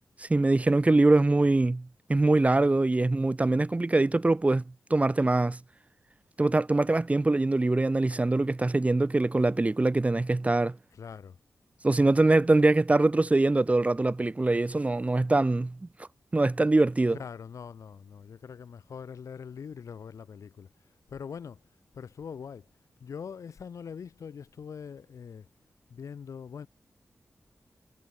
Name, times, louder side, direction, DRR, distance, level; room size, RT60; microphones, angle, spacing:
voice 1, 0.2-4.6 4.9-5.6 6.4-10.8 11.8-15.9 16.3-17.2, right 2 dB, 25° right, 1.9 m, -23 dB
voice 2, 10.9-11.4 17.1-21.7 21.9-22.7 23.0-25.5 25.9-26.7, left 6 dB, 90° left, 4.0 m, -42 dB
wide cardioid pair, 85°, 5 cm